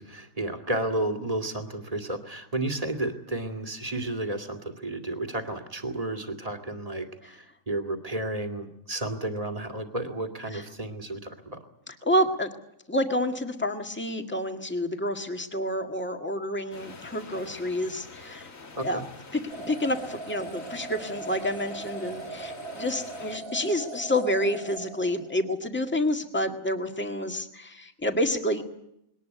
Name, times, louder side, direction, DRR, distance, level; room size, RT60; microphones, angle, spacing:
voice 1, 0.0-11.6 18.8-19.0, right 1 dB, 25° right, 6 dB, 2.3 m, -32 dB
voice 2, 11.9-12.5 12.9-18.5 18.8-19.0 19.3-28.6, left 1 dB, 10° left, 5 dB, 1.7 m, -29 dB
sound 1, 16.7-23.4, left 3 dB, 70° left, 2.4 m, -46 dB
sound 2, 19.5-25.6, right 3 dB, 75° right, 2.9 m, -40 dB
21.0 x 19.0 x 9.3 m, 0.80 s
omnidirectional pair, 1.4 m